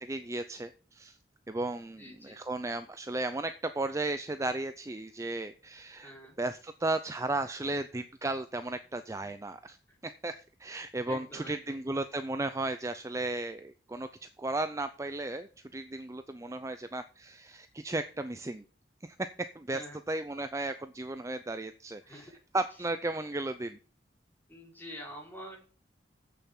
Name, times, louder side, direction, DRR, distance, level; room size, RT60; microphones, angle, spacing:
voice 1, 0.0-1.2 1.5-9.8 10.0-14.1 14.4-18.6 19.0-19.3 19.6-19.8 20.1-22.3 22.5-23.8, right 2 dB, 15° right, 10 dB, 0.5 m, -35 dB
voice 2, 2.0-2.4 6.0-6.4 9.9-10.0 11.1-11.8 19.7-20.0 22.0-22.4 24.5-25.6, equal, 10° left, -2 dB, 4.1 m, -46 dB
8.1 x 7.0 x 7.2 m, 0.39 s
head